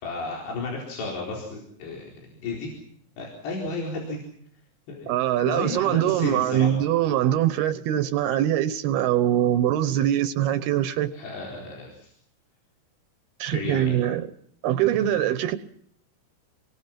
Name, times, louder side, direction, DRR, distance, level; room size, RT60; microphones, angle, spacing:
voice 1, 0.0-2.7 3.2-4.2 4.9-5.1 5.5-6.7 11.1-12.1 13.5-13.9, left 3 dB, 80° left, 6.5 m, -33 dB
voice 2, 5.1-11.1 13.4-14.3 14.6-15.6, right 12 dB, 75° right, 2.9 m, -23 dB
27.5 x 22.5 x 5.9 m
omnidirectional pair, 4.8 m